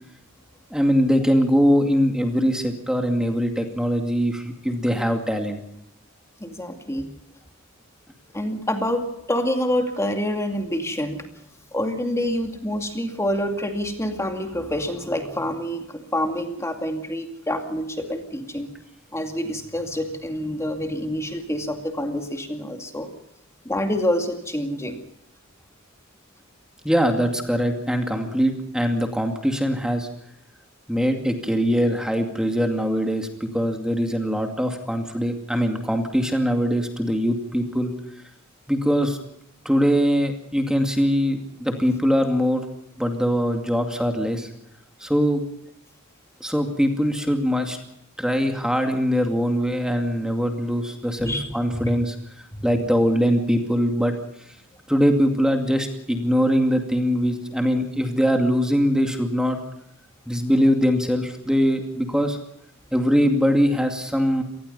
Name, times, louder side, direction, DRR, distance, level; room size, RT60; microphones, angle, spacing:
voice 1, 0.7-5.6 26.8-30.1 30.9-37.9 38.7-39.2 39.6-42.6 43.0-44.5 45.0-45.4 46.4-47.8 48.2-54.1 54.9-59.6 60.3-62.4 62.9-64.4, equal, 5° right, 4 dB, 2.3 m, -22 dB
voice 2, 6.4-7.1 8.3-11.2 11.7-18.7 19.1-23.1 23.6-25.0 51.2-51.9 52.5-52.6, left 1 dB, 15° left, 4 dB, 2.3 m, -27 dB
27.0 x 19.5 x 5.5 m, 0.76 s
head